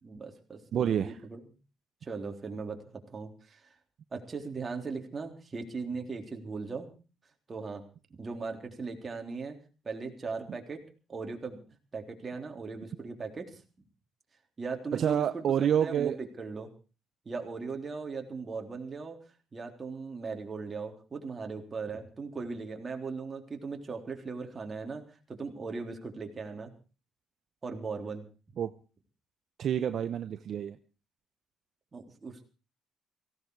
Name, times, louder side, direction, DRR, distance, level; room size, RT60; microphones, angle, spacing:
voice 1, 0.0-1.4 2.0-3.3 3.6-3.7 4.1-6.9 7.5-7.8 8.2-9.6 9.8-10.8 11.1-11.6 11.9-13.6 14.6-16.7 17.3-19.2 19.5-25.0 25.3-26.7 27.6-28.2 31.9-32.4, right 4 dB, 30° right, 3 dB, 3.6 m, -38 dB
voice 2, 0.7-1.2 14.9-16.2 28.6-28.7 29.6-30.8, right 9 dB, 60° right, 10 dB, 0.8 m, -28 dB
17.5 x 16.5 x 4.7 m, 0.36 s
cardioid pair, 100°, 0 cm